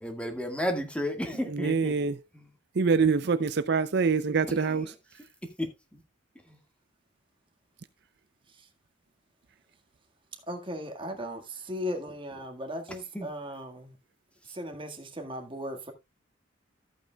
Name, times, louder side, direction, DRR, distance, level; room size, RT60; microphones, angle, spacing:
voice 1, 0.0-2.0 2.3-2.5 4.5-4.9 5.6-5.7 13.1-13.3, equal, 5° left, 1.7 m, -32 dB
voice 2, 1.5-2.2 2.8-4.9, right 5 dB, 60° right, 0.5 m, -25 dB
voice 3, 10.5-14.0 14.4-15.9, equal, 25° right, 1.7 m, -37 dB
14.0 x 8.4 x 2.3 m
head